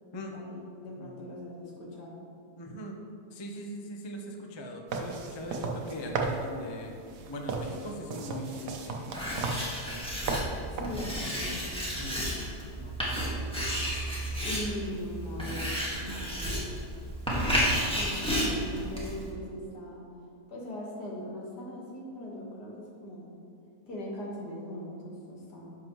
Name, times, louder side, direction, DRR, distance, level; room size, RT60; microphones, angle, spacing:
voice 1, 0.3-2.2 10.7-11.7 14.4-16.5 17.9-20.0 20.5-23.3 23.9-25.8, left 1 dB, 70° left, -3 dB, 2.1 m, -40 dB
voice 2, 1.0-1.3 2.6-3.0 3.3-6.9 7.3-9.6 9.8-10.1 11.2-11.6 11.9-12.2 12.8-13.3, equal, 45° left, 2 dB, 0.3 m, -41 dB
sound 1, 4.9-11.1, right 3 dB, 75° right, 1.3 m, -36 dB
Writing, 9.1-19.3, equal, 5° left, 1.5 m, -32 dB
10.5 x 6.3 x 3.1 m, 2.5 s
omnidirectional pair, 1.8 m